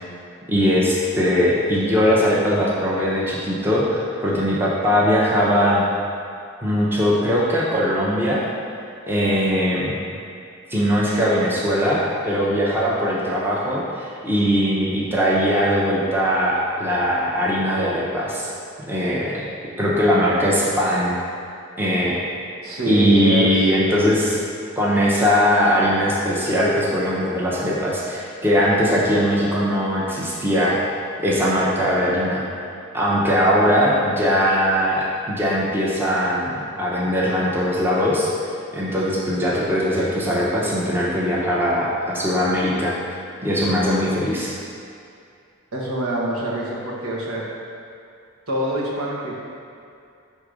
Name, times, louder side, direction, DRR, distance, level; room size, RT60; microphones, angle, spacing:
voice 1, 0.5-5.8 6.6-8.5 9.1-10.0 10.7-18.5 18.9-19.4 19.8-21.2 21.8-22.2 22.8-24.4 24.8-30.8 31.2-32.4 32.9-38.3 38.7-42.9 43.4-44.5, equal, 10° right, -6 dB, 0.7 m, -20 dB
voice 2, 22.6-23.7 45.7-47.5 48.5-49.4, right 1 dB, 90° right, -5 dB, 1.3 m, -25 dB
6.5 x 3.7 x 4.9 m, 2.5 s
head